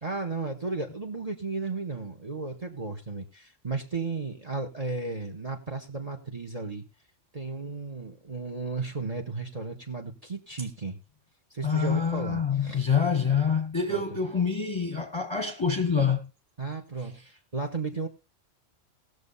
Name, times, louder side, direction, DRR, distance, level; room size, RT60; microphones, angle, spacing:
voice 1, 0.0-6.8 7.3-11.0 11.5-12.9 13.9-14.0 16.6-18.1, right 3 dB, 30° right, 1.7 m, -34 dB
voice 2, 11.6-16.3, left 6 dB, 25° left, 1.2 m, -26 dB
18.5 x 6.8 x 4.2 m
omnidirectional pair, 1.3 m